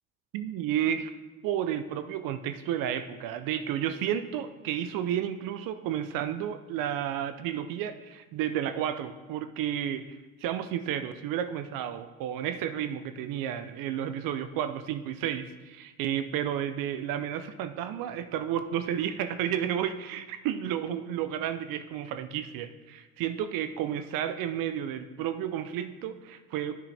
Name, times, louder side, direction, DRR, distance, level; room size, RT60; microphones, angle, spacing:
voice 1, 0.3-1.1 1.4-10.2 10.4-26.8, right 10 dB, 70° right, 11 dB, 0.6 m, -32 dB
9.1 x 6.0 x 3.4 m, 1.2 s
supercardioid pair, 80°, 35 cm